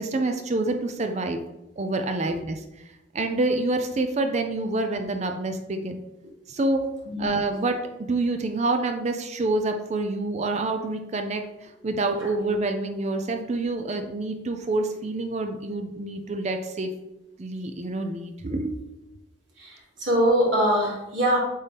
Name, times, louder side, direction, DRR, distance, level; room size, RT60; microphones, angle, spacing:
voice 1, 0.0-1.4 1.8-2.6 3.1-6.0 6.5-6.9 7.2-16.9 17.4-18.8, right 2 dB, 40° right, 6 dB, 0.5 m, -27 dB
voice 2, 19.6-21.4, equal, 85° right, -4 dB, 2.3 m, -23 dB
8.3 x 3.7 x 3.4 m, 0.93 s
head